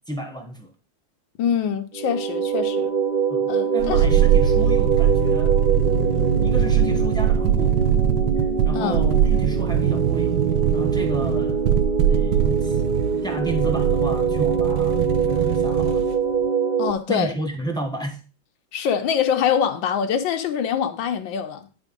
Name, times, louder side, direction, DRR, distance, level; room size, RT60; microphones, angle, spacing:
voice 1, 0.1-0.7 3.3-5.5 6.4-7.9 8.7-10.3 10.7-11.7 12.1-12.8 13.2-16.0 17.1-18.2, right 1 dB, 5° left, 0.6 m, -32 dB
voice 2, 1.4-2.9 3.5-4.0 8.7-9.0 16.8-17.3 18.7-21.7, left 8 dB, 80° left, 1.6 m, -24 dB
sound 1, 1.9-16.9, right 5 dB, 55° right, 0.5 m, -24 dB
sound 2, 3.8-16.2 16.4-16.5, right 9 dB, 75° right, 1.2 m, -21 dB
10.5 x 3.5 x 5.2 m
omnidirectional pair, 2.1 m